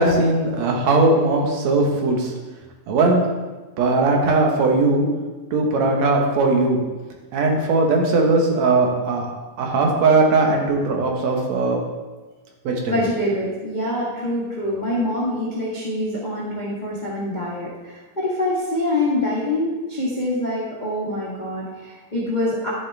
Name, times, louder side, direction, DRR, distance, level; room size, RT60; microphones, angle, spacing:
voice 1, 0.0-2.3 2.9-3.3 3.8-5.1 5.5-6.8 7.3-9.3 9.6-11.8 12.6-13.0, right 3 dB, 60° right, 1 dB, 2.4 m, -19 dB
voice 2, 12.9-22.7, left 1 dB, 30° left, -7 dB, 0.8 m, -25 dB
12.0 x 7.5 x 3.5 m, 1.3 s
omnidirectional pair, 4.0 m